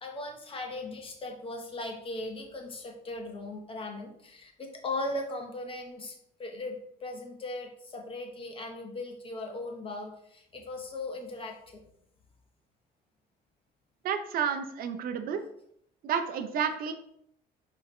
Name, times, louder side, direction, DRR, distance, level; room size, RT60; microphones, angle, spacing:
voice 1, 0.0-6.7 7.0-11.8, left 2 dB, 30° left, 2 dB, 1.0 m, -38 dB
voice 2, 14.0-15.4 16.0-16.9, right 7 dB, 60° right, 8 dB, 0.6 m, -30 dB
4.7 x 3.5 x 3.1 m, 0.72 s
cardioid pair, 110°, 17 cm